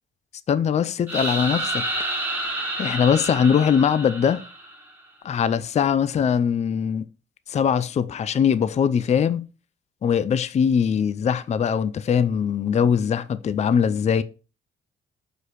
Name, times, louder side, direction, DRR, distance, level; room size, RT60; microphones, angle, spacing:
voice 1, 0.5-1.8 2.8-4.4 5.2-7.1 7.5-9.5 10.0-14.2, left 7 dB, 35° left, 0.4 m, -21 dB
sound 1, 1.1-4.9, right 1 dB, 10° right, 1.8 m, -29 dB
5.0 x 4.2 x 4.6 m
cardioid pair, 90°, 20 cm